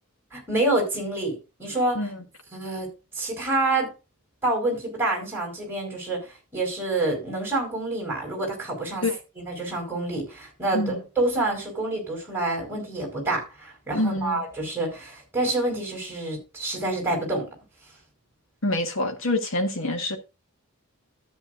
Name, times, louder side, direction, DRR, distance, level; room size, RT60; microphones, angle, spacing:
voice 1, 0.3-2.0 2.5-2.9 3.1-3.9 4.4-9.0 9.4-17.5, right 2 dB, 10° right, 5.0 m, -27 dB
voice 2, 13.9-14.4 18.6-20.2, left 1 dB, 60° left, 1.6 m, -26 dB
13.0 x 8.7 x 2.6 m
head